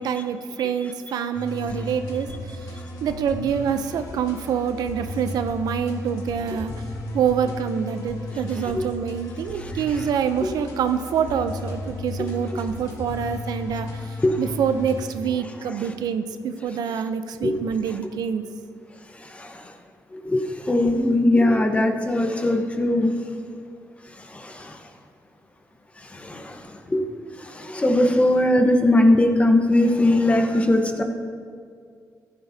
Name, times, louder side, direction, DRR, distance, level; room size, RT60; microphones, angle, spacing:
voice 1, 0.0-2.6 3.0-6.7 7.1-18.4, right 7 dB, 85° right, 9 dB, 0.6 m, -26 dB
sound 1, 1.3-15.1, left 2 dB, 70° left, 1.8 m, -35 dB
voice 2, 20.1-23.1 24.3-24.8 26.1-26.6 26.9-27.0 27.5-31.0, left 1 dB, 20° left, 5 dB, 1.1 m, -20 dB
14.0 x 12.0 x 2.8 m, 2.2 s
cardioid pair, 110°, 7 cm